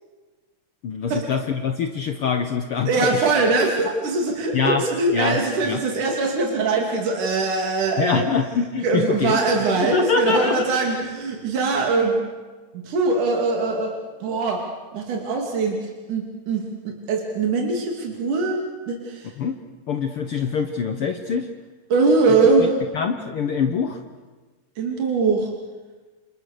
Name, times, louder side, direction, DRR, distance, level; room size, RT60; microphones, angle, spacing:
voice 1, 0.8-3.3 4.5-4.8 5.1-5.8 8.0-9.4 9.8-10.7 19.4-19.6 19.9-21.5 22.9-24.0, left 6 dB, 55° left, 6 dB, 1.7 m, -24 dB
voice 2, 2.9-8.3 8.8-12.2 12.7-13.9 14.2-14.6 14.9-18.6 18.9-19.3 21.9-22.8 24.8-25.5, right 3 dB, 85° right, 1 dB, 4.2 m, -22 dB
29.0 x 28.5 x 6.7 m, 1.3 s
omnidirectional pair, 3.5 m